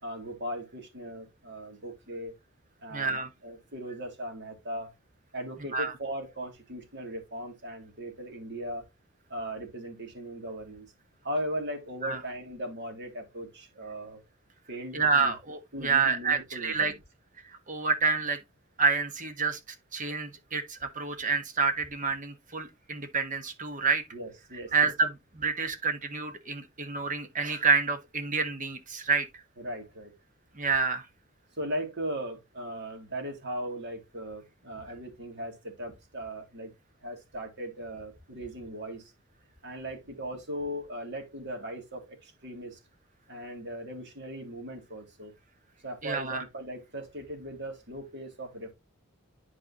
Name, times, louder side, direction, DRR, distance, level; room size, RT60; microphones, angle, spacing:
voice 1, 0.0-2.3 2.8-4.9 5.3-8.8 9.3-10.9 11.2-14.2 14.7-15.3 15.7-16.9 24.1-24.7 29.6-30.1 31.6-36.7 37.0-39.1 39.6-42.8 43.3-45.3 45.8-48.7, right 1 dB, 55° right, 2.7 m, -38 dB
voice 2, 2.9-3.3 5.7-5.9 12.0-12.2 14.9-16.9 17.4-18.4 18.8-19.6 19.9-24.0 24.7-29.4 30.5-31.0 46.0-46.4, right 4 dB, 40° right, 1.3 m, -28 dB
11.0 x 4.7 x 2.9 m
head